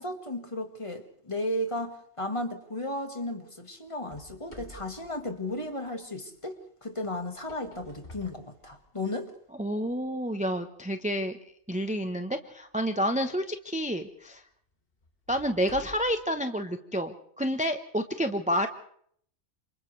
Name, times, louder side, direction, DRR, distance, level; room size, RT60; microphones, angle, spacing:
voice 1, 0.0-9.3, left 1 dB, 25° left, 6 dB, 1.7 m, -34 dB
sound 1, 4.1-6.1 7.2-9.2 9.8-9.9 10.6-10.7 13.3-13.5 14.0-14.1 15.0-16.3, left 1 dB, 45° left, 3.0 m, -50 dB
voice 2, 9.6-11.4 11.7-14.4 15.3-18.7, equal, 5° right, 7 dB, 0.8 m, -29 dB
29.0 x 27.5 x 3.3 m, 0.64 s
omnidirectional pair, 1.3 m